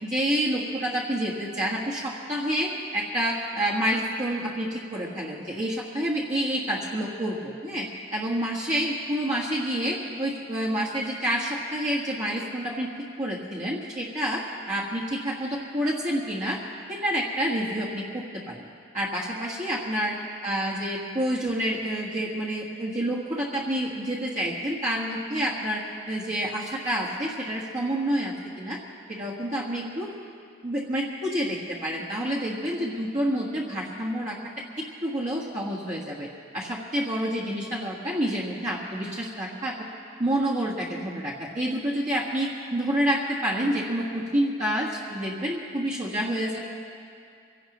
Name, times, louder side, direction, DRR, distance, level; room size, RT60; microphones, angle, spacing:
voice 1, 0.0-12.9 13.2-16.6 16.9-18.6 18.9-20.2 20.4-28.8 29.1-30.1 30.6-34.4 34.8-36.3 36.5-39.8 40.2-46.6, equal, 35° right, -5 dB, 1.5 m, -28 dB
24.5 x 17.0 x 3.0 m, 2.4 s
head